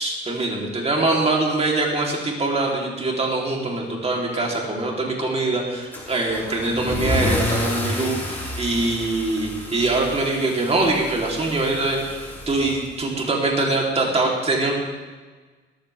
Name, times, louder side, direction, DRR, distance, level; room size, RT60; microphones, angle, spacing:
voice 1, 0.0-14.7, right 2 dB, 30° right, -2 dB, 3.9 m, -23 dB
Car / Engine starting / Accelerating revving vroom, 5.9-13.3, left 1 dB, 10° left, 5.4 m, -30 dB
19.5 x 14.5 x 3.7 m, 1.3 s
cardioid pair, 90°, 20 cm